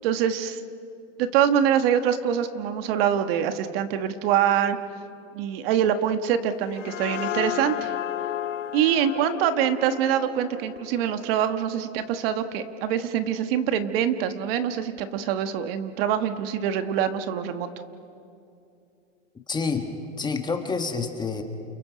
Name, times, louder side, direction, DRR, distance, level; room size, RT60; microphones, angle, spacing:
voice 1, 0.0-0.6 1.2-4.8 5.3-7.9 8.7-17.7, right 9 dB, 50° right, 9 dB, 1.5 m, -24 dB
sound 1, 6.5-11.9, left 11 dB, 80° left, 1.1 m, -34 dB
voice 2, 19.5-19.9 20.2-21.4, left 4 dB, 10° left, 5 dB, 1.5 m, -28 dB
29.5 x 29.0 x 5.1 m, 2.6 s
supercardioid pair, 145°, 37 cm